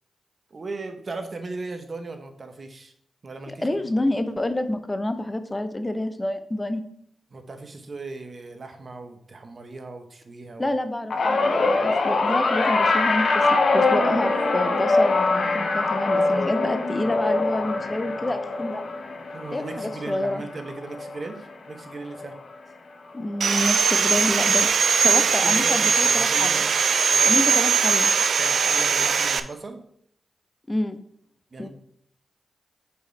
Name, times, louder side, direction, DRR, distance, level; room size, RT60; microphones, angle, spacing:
voice 1, 0.5-2.9 3.2-3.8 7.3-10.7 19.3-22.4 25.0-26.7 27.1-27.4 28.4-29.8 31.5-31.7, right 3 dB, 50° right, 7 dB, 1.0 m, -37 dB
voice 2, 3.5-6.8 10.6-18.8 19.5-20.4 23.1-24.7 25.0-26.6 27.3-28.1 30.7-31.0 31.6-31.7, left 1 dB, 25° left, 9 dB, 0.7 m, -28 dB
sound 1, 11.1-21.5 21.9-22.3 23.4-23.5, left 3 dB, 65° left, 0.8 m, -23 dB
Sawing, 23.4-29.4, right 6 dB, 65° right, 0.4 m, -20 dB
5.0 x 5.0 x 4.5 m, 0.67 s
supercardioid pair, 40°, 0 cm